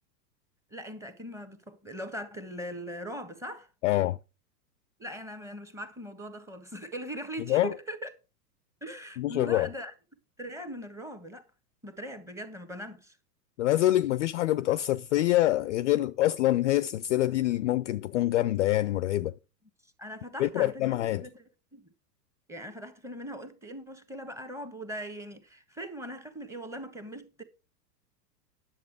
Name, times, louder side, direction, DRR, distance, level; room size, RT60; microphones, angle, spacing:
voice 1, 0.7-3.7 5.0-8.1 8.8-9.9 10.4-11.5 11.8-13.2 20.0-20.8 21.2-21.4 21.7-21.9 22.5-27.4, equal, 5° right, 1.3 m, -40 dB
voice 2, 3.8-4.2 7.5-7.7 9.2-9.7 13.6-19.3 20.4-21.2, left 15 dB, 50° left, 0.5 m, -25 dB
10.5 x 7.4 x 4.7 m
figure-of-eight pair, 105°, 50 cm